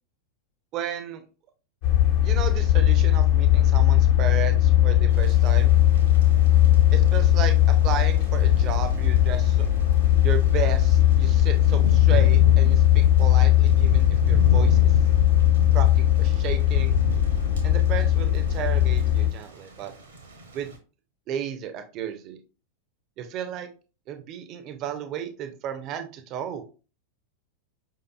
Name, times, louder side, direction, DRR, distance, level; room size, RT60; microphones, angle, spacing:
voice 1, 0.7-1.2 2.2-5.8 6.9-7.5 7.8-9.7 10.2-14.9 15.7-17.0 17.6-19.9 20.5-20.7 21.3-22.4 23.2-23.7 24.1-26.6, right 8 dB, 35° right, 7 dB, 0.6 m, -33 dB
sound 1, 1.8-19.3, left 12 dB, 50° left, 1.0 m, -19 dB
Thunder / Rain, 5.1-20.8, right 3 dB, 65° right, 0.9 m, -36 dB
5.0 x 2.9 x 2.3 m, 0.34 s
figure-of-eight pair, 90°, 0 cm